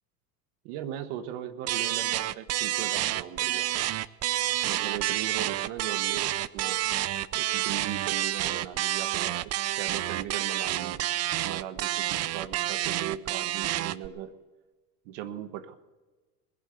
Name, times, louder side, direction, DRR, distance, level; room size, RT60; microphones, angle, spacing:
voice 1, 0.6-3.7 4.6-6.8 7.3-9.4 9.8-11.0 11.4-14.3 15.0-15.7, right 11 dB, 70° right, 11 dB, 1.4 m, -38 dB
sound 1, 1.7-14.1, right 14 dB, 35° right, 0.6 m, -29 dB
21.0 x 8.0 x 8.1 m, 1.3 s
supercardioid pair, 100°, 42 cm